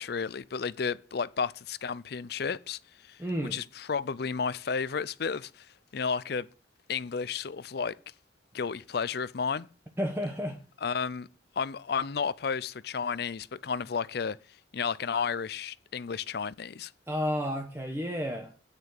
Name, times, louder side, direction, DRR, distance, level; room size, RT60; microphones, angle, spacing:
voice 1, 0.0-2.8 3.0-3.2 3.5-5.7 5.9-6.5 6.9-8.0 8.5-9.7 10.8-11.3 11.6-14.4 14.7-16.9, left 6 dB, 60° left, 0.5 m, -32 dB
voice 2, 3.2-3.6 10.0-10.6 17.1-18.5, equal, 15° right, 1.0 m, -31 dB
9.0 x 6.6 x 6.6 m
head